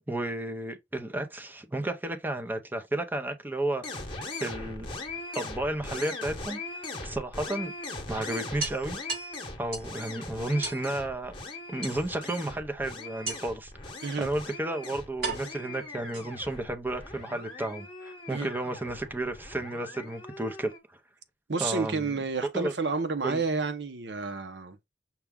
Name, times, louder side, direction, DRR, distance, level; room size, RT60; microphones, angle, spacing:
voice 1, 0.1-3.8 4.4-4.9 5.3-6.6 7.0-7.7 8.1-9.0 9.6-11.3 11.7-13.7 14.2-20.7 21.6-22.2 22.5-22.7 23.2-23.4, right 1 dB, 10° right, 0.6 m, -32 dB
sound 1, 3.8-20.8, left 2 dB, 30° left, 1.0 m, -40 dB
sound 2, 4.6-5.6 7.1-7.2 7.6-7.7 8.0-8.1 8.6-10.0 10.6-10.9 11.8-12.4 13.3-13.7 14.5-14.6 15.2-16.6, right 3 dB, 65° right, 2.9 m, -37 dB
voice 2, 21.5-24.8, right 4 dB, 80° right, 0.8 m, -30 dB
5.8 x 2.3 x 3.5 m
head